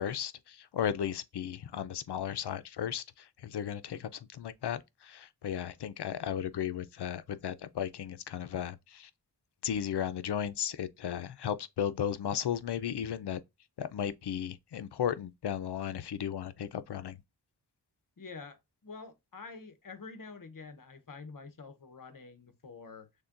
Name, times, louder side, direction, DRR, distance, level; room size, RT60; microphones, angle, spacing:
voice 1, 0.0-9.1 9.6-13.4 13.8-17.2, left 9 dB, 65° left, 0.5 m, -35 dB
voice 2, 18.2-23.1, left 4 dB, 50° left, 0.9 m, -47 dB
6.5 x 2.2 x 2.4 m
wide cardioid pair, 65°, 43 cm